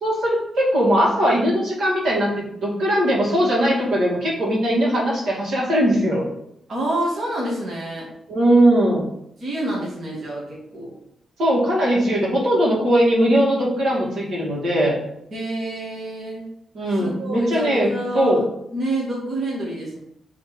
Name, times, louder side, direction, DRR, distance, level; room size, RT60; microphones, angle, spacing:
voice 1, 0.0-2.3 2.6-6.3 8.3-9.0 11.4-15.0 16.7-17.9 18.1-18.4, equal, 80° right, -4 dB, 2.2 m, -19 dB
voice 2, 6.7-8.1 9.4-11.0 15.3-16.5 16.9-20.0, right 1 dB, 50° right, -5 dB, 1.7 m, -28 dB
5.4 x 3.5 x 5.0 m, 0.76 s
cardioid pair, 115°, 0 cm